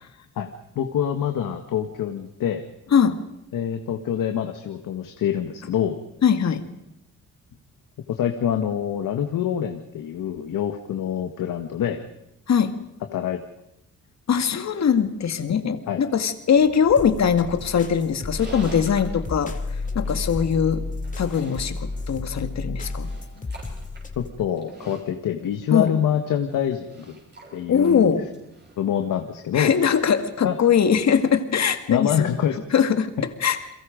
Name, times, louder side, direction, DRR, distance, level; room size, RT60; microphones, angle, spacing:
voice 1, 0.8-2.6 3.5-6.0 8.1-12.0 13.1-13.4 15.9-16.0 24.2-27.1 27.5-28.1 28.8-29.7 30.4-30.5 31.9-32.6, left 9 dB, 80° left, 6 dB, 1.7 m, -25 dB
voice 2, 6.2-6.7 12.5-12.8 14.3-19.5 20.0-20.9 21.2-23.1 25.7-26.0 27.7-28.3 29.5-32.3 32.7-33.1 33.4-33.6, left 7 dB, 55° left, 9 dB, 2.1 m, -21 dB
sound 1, 16.9-24.3, left 3 dB, 25° left, 2.7 m, -32 dB
Livestock farm animals working animals, 18.0-29.3, right 2 dB, 35° right, 7.6 m, -48 dB
30.0 x 22.5 x 5.2 m, 0.82 s
cardioid pair, 95°, 32 cm